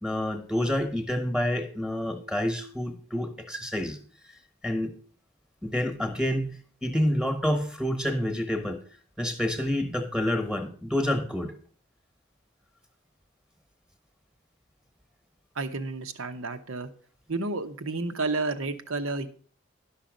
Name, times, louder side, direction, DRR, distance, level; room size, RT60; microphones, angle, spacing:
voice 1, 0.0-4.0 4.6-4.9 5.6-8.8 9.2-11.5, left 1 dB, 5° right, 1.2 m, -28 dB
voice 2, 15.6-16.9 17.3-19.3, right 3 dB, 80° right, 1.0 m, -31 dB
11.5 x 5.8 x 5.1 m
head